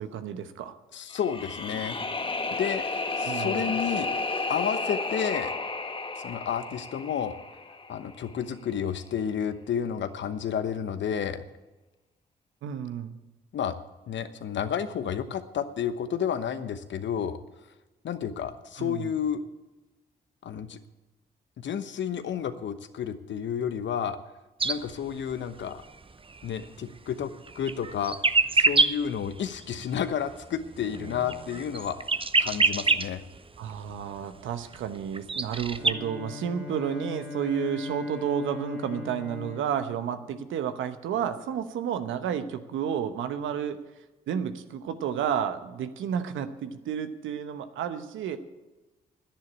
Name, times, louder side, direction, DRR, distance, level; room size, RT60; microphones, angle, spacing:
voice 1, 0.0-0.7 3.2-3.7 12.6-13.1 18.8-19.1 33.6-43.8 44.3-48.4, right 8 dB, 75° right, 10 dB, 1.0 m, -31 dB
voice 2, 0.9-2.0 2.6-4.1 4.5-5.5 6.2-7.4 7.9-11.4 13.5-13.8 14.1-17.4 18.0-19.4 20.4-20.8 21.6-24.2 24.6-25.8 26.4-28.2 28.5-32.0 32.4-33.2, left 8 dB, 65° left, 11 dB, 1.0 m, -31 dB
sound 1, 1.1-8.2, left 3 dB, 25° left, 1.2 m, -32 dB
sound 2, 24.6-24.8 25.1-25.3 25.6-26.7 27.1-27.2 27.5-29.0 29.4-30.0 30.3-33.1 33.4-33.5 33.9-34.0 34.7-34.9 35.1-35.9, right 4 dB, 25° right, 0.7 m, -26 dB
Bowed string instrument, 35.6-40.9, left 4 dB, 80° left, 1.9 m, -40 dB
10.5 x 10.0 x 8.5 m, 1.1 s
hypercardioid pair, 40°, 21 cm